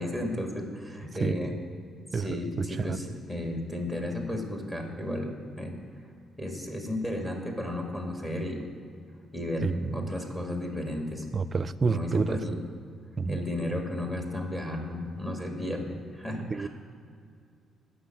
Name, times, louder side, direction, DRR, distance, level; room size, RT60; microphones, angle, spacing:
voice 1, 0.0-1.5 2.1-5.3 5.6-5.7 6.4-8.7 9.3-11.3 11.8-12.6 13.3-16.7, left 1 dB, 15° left, 1 dB, 2.2 m, -33 dB
voice 2, 2.1-3.0 9.6-10.1 11.3-12.6 13.2-13.4 16.5-16.7, right 4 dB, 35° right, 15 dB, 0.5 m, -29 dB
11.5 x 6.3 x 9.3 m, 2.3 s
cardioid pair, 90°, 0 cm